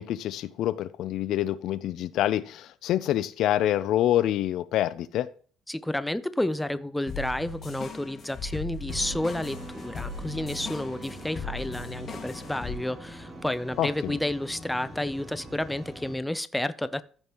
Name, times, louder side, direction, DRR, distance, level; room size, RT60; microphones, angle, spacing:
voice 1, 0.0-5.3 13.8-14.2, left 12 dB, 70° left, 17 dB, 0.5 m, -26 dB
voice 2, 5.7-17.0, left 1 dB, 5° left, 14 dB, 0.6 m, -31 dB
sound 1, 7.1-12.8, left 4 dB, 45° left, 1.8 m, -38 dB
sound 2, 8.9-16.1, right 1 dB, 25° right, 2.5 m, -43 dB
14.5 x 5.3 x 3.0 m, 0.43 s
cardioid pair, 95°, 0 cm